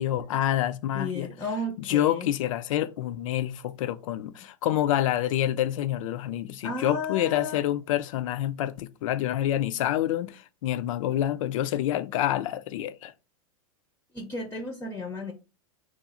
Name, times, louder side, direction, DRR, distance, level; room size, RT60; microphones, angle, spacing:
voice 1, 0.0-1.3 1.8-13.1, left 12 dB, 70° left, 0.5 m, -27 dB
voice 2, 0.9-2.3 6.6-7.6 14.1-15.3, left 2 dB, 15° left, 0.6 m, -33 dB
3.1 x 2.3 x 3.6 m
hypercardioid pair, 120°, 18 cm